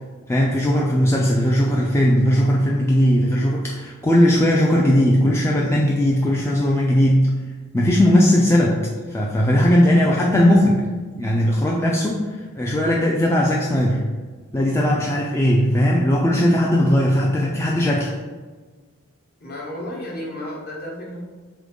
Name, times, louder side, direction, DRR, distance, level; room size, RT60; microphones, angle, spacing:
voice 1, 0.3-7.3 7.7-10.8 11.2-14.0 14.5-18.1, equal, 10° left, -3 dB, 0.3 m, -18 dB
voice 2, 19.4-21.2, left 1 dB, 45° left, -3 dB, 1.0 m, -32 dB
3.7 x 3.5 x 3.6 m, 1.4 s
head